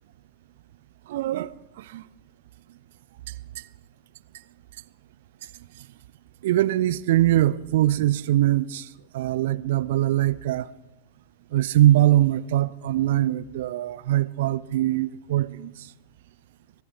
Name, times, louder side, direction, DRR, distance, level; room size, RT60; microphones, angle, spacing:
voice 1, 1.1-1.5 1.9-2.0 6.4-8.9 9.1-10.7 11.5-15.7, right 14 dB, 55° right, 0.5 m, -22 dB
23.5 x 16.0 x 3.5 m
figure-of-eight pair, 90°, 0 cm